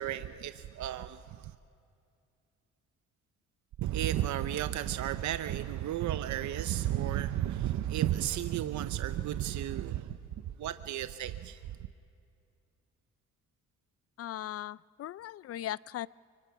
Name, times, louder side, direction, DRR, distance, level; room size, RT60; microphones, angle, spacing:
voice 1, 0.0-1.5 3.8-10.2 10.6-11.6, right 12 dB, 70° right, 0.8 m, -33 dB
voice 2, 14.2-16.1, left 12 dB, 50° left, 0.5 m, -38 dB
25.0 x 24.0 x 6.0 m
cardioid pair, 90°, 30 cm